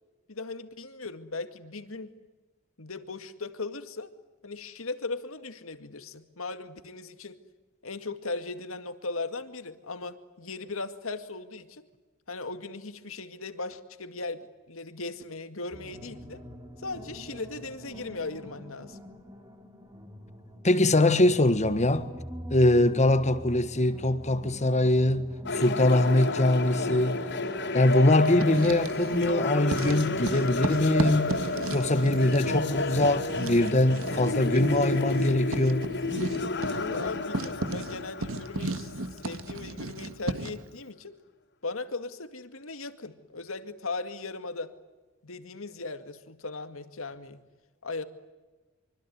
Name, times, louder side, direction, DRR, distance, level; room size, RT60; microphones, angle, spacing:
voice 1, 0.3-2.1 2.8-4.1 4.4-7.4 7.8-11.8 12.3-16.4 16.8-19.0 36.7-41.1 41.6-44.7 45.2-47.4 47.8-48.0, left 3 dB, 75° left, 2.1 m, -38 dB
sound 1, 15.7-25.7, equal, 20° right, 3.0 m, -44 dB
voice 2, 20.6-22.1 22.5-27.2 27.7-31.4 31.7-35.8, left 1 dB, 35° left, 1.6 m, -23 dB
sound 2, 25.5-39.6, left 2 dB, 60° left, 3.6 m, -31 dB
Writing, 28.2-29.4 29.7-40.7, right 2 dB, 90° right, 1.7 m, -35 dB
25.0 x 25.0 x 9.5 m
head